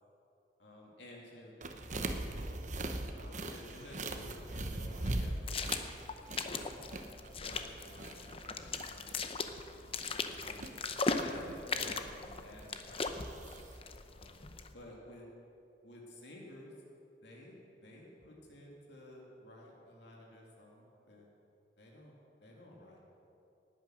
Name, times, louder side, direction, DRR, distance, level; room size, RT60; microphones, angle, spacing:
voice 1, 0.6-1.8 2.1-2.6 3.1-7.0 7.4-9.1 9.8-10.2 10.4-10.7 11.0-13.5 14.1-14.4 14.7-15.2 15.8-16.7 17.2-21.3 21.8-22.1 22.4-23.1, left 1 dB, 75° left, -2 dB, 2.7 m, -53 dB
Eating Pretzel, 1.6-13.8, right 2 dB, 45° right, 1.0 m, -42 dB
sound 1, 3.7-14.7, left 4 dB, 30° left, 0.8 m, -39 dB
19.0 x 9.0 x 6.5 m, 2.7 s
head